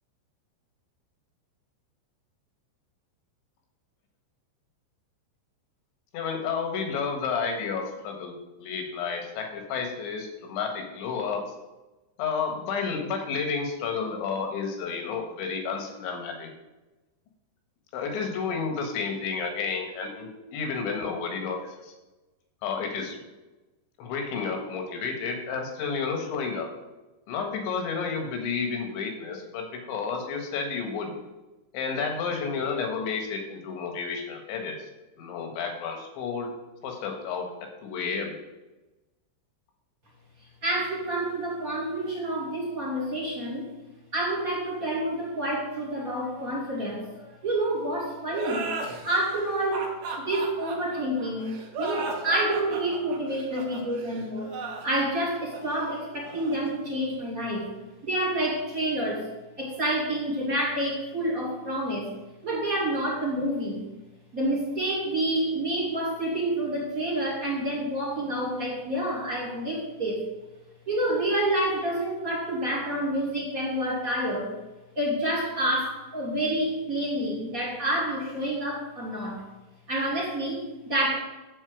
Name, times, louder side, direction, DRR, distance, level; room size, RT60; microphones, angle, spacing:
voice 1, 6.1-8.3 8.6-11.4 12.2-16.5 17.9-21.9 22.6-23.2 24.0-26.7 27.3-31.1 31.7-34.9 35.2-36.5 36.8-37.5 37.8-38.3, left 5 dB, 75° left, 3 dB, 3.8 m, -31 dB
voice 2, 40.6-43.7 44.1-48.7 49.0-54.6 54.8-57.7 58.0-59.3 59.6-62.1 62.4-63.9 64.3-70.3 70.9-74.5 75.0-79.4 79.9-81.2, right 1 dB, 25° right, -4 dB, 2.1 m, -28 dB
sound 1, 48.3-57.6, right 3 dB, 75° right, 4.2 m, -37 dB
12.5 x 4.3 x 8.4 m, 1.1 s
omnidirectional pair, 5.4 m